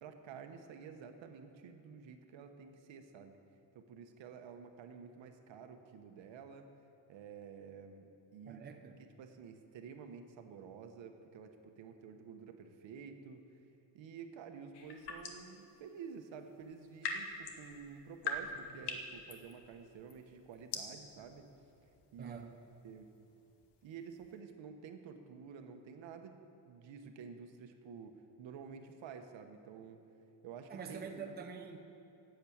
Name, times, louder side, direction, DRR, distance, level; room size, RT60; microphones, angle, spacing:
voice 1, 0.0-3.4 3.7-6.7 7.1-8.1 8.3-13.4 13.9-21.5 22.1-22.5 22.8-23.1 23.8-30.0 30.4-31.3, right 6 dB, 70° right, 6 dB, 1.1 m, -51 dB
voice 2, 8.5-9.0 22.2-22.5 30.7-31.8, right 6 dB, 20° right, 2 dB, 0.7 m, -46 dB
sound 1, 14.7-15.5 16.6-24.4, left 3 dB, 60° left, 1.2 m, -44 dB
10.5 x 7.8 x 8.5 m, 2.8 s
cardioid pair, 175°, 46 cm